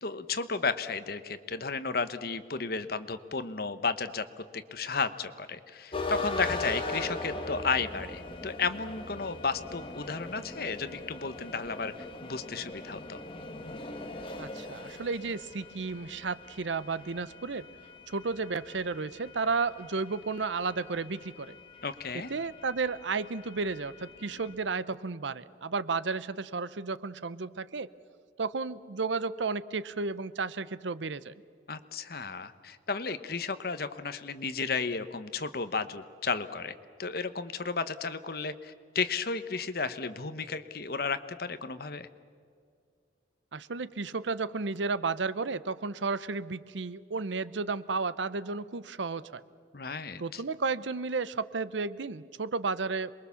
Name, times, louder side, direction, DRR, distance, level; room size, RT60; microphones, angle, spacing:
voice 1, 0.0-11.9 12.2-13.2 21.8-22.3 31.7-36.7 37.0-42.1 49.7-50.4, left 4 dB, 55° left, 11 dB, 1.1 m, -33 dB
sound 1, 5.9-24.5, left 2 dB, 30° left, 2.0 m, -41 dB
voice 2, 14.4-17.7 18.1-21.5 22.3-27.9 28.4-31.3 43.5-49.4 50.2-53.1, right 4 dB, 90° right, 16 dB, 0.8 m, -33 dB
27.5 x 22.0 x 7.1 m, 2.2 s
head